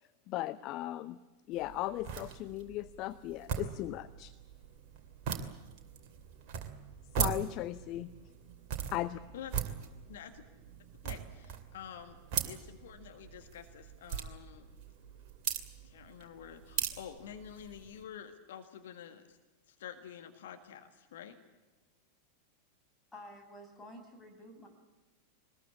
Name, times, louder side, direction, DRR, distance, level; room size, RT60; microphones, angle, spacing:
voice 1, 0.3-1.2 1.5-4.3 7.2-8.1 8.9-9.2, left 15 dB, 40° left, 14 dB, 0.7 m, -37 dB
sound 1, 1.5-18.0, right 8 dB, 45° right, 2.7 m, -40 dB
voice 2, 10.1-10.4 11.0-12.2 12.4-14.7 15.8-19.4 19.7-21.3, left 9 dB, 60° left, 6 dB, 1.8 m, -48 dB
voice 3, 23.1-24.7, left 1 dB, 10° left, 3 dB, 5.6 m, -50 dB
23.0 x 20.5 x 8.6 m, 1.2 s
figure-of-eight pair, 90°, 0 cm